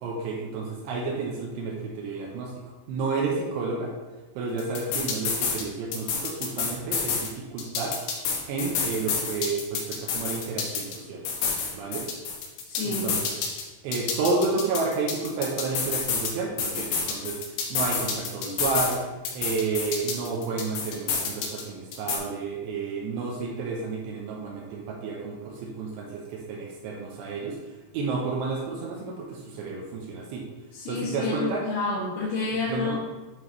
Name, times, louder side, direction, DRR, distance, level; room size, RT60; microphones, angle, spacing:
voice 1, 0.0-2.5 2.9-3.9 4.4-8.0 8.5-11.3 11.7-12.1 12.8-13.3 13.8-17.4 17.7-19.0 19.3-30.5 30.9-31.6 32.7-33.0, right 4 dB, 80° right, -1 dB, 2.6 m, -31 dB
sound 1, 4.6-5.6 5.9-7.3 7.6-11.0 11.3-13.6 13.9-16.3 16.6-19.0 19.3-21.6 21.9-22.2, left 5 dB, 75° left, 2.8 m, -29 dB
voice 2, 12.7-13.1 30.7-33.0, left 3 dB, 55° left, -9 dB, 2.3 m, -29 dB
9.6 x 4.0 x 3.0 m, 1.2 s
omnidirectional pair, 5.6 m